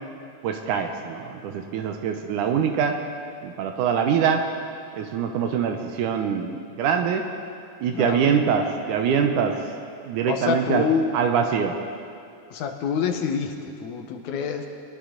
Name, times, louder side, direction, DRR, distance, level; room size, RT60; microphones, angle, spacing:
voice 1, 0.4-2.9 3.4-4.4 5.0-7.2 7.8-9.5 10.1-10.9 11.1-11.8, right 7 dB, 80° right, 5 dB, 2.2 m, -24 dB
voice 2, 7.9-8.3 10.3-11.1 12.5-14.7, left 6 dB, 75° left, 4 dB, 2.3 m, -26 dB
24.0 x 11.5 x 3.9 m, 2.4 s
omnidirectional pair, 3.7 m